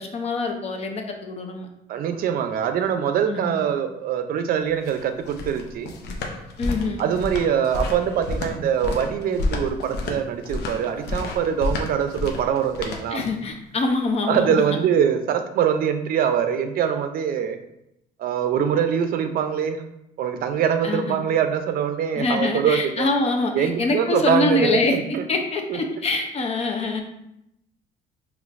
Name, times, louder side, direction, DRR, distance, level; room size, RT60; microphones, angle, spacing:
voice 1, 0.0-1.7 3.3-3.6 6.6-7.0 13.1-14.6 20.8-21.2 22.2-25.0 25.3-27.0, left 3 dB, 40° left, 3 dB, 0.7 m, -24 dB
voice 2, 1.9-5.9 7.0-13.2 14.3-17.6 18.2-19.8 20.2-23.1 23.5-25.3 25.7-26.0, right 8 dB, 60° right, 8 dB, 0.5 m, -23 dB
sound 1, 4.6-13.5, left 2 dB, 85° left, 0.7 m, -30 dB
5.0 x 3.1 x 2.5 m, 0.83 s
cardioid pair, 110°, 17 cm